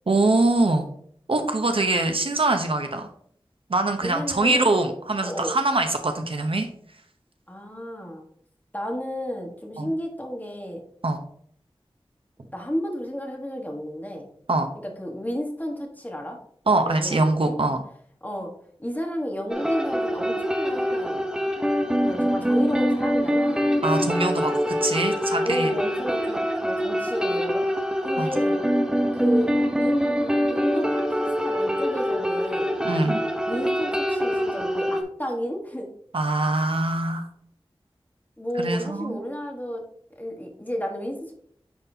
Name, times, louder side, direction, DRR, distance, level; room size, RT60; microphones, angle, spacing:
voice 1, 0.1-0.9 1.3-3.1 3.7-6.7 9.8-9.9 11.0-11.2 14.5-14.7 16.7-17.8 23.8-25.7 28.2-28.3 32.8-33.2 36.1-37.3 38.6-39.2, right 2 dB, 65° right, 5 dB, 0.8 m, -23 dB
voice 2, 4.0-4.8 5.2-5.6 7.5-8.3 8.7-10.8 12.5-14.3 15.0-16.4 16.8-17.5 18.2-18.5 18.8-21.3 22.0-23.7 25.4-27.6 28.0-28.6 29.1-29.5 29.8-32.8 33.5-35.9 38.4-39.8 40.2-41.3, equal, 15° left, 1 dB, 1.4 m, -32 dB
sound 1, 19.5-35.0, equal, 10° right, 0.9 m, -24 dB
9.4 x 4.1 x 2.8 m, 0.63 s
wide cardioid pair, 55°, 10 cm